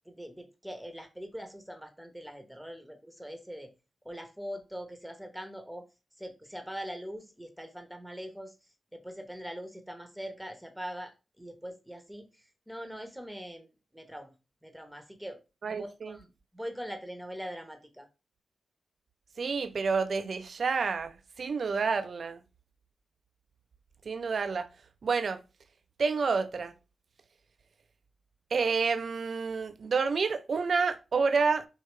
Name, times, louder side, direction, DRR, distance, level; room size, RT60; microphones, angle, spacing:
voice 1, 0.1-3.7 4.0-5.8 6.2-8.5 8.9-12.2 12.7-13.7 13.9-14.3 14.6-15.4 15.7-16.3 16.5-18.1, equal, ahead, 1.0 m, -42 dB
voice 2, 15.6-16.2 19.4-22.4 24.1-24.7 25.0-25.4 26.0-26.7 28.5-31.7, right 5 dB, 70° right, 0.5 m, -29 dB
4.7 x 2.7 x 3.1 m
cardioid pair, 50°, 0 cm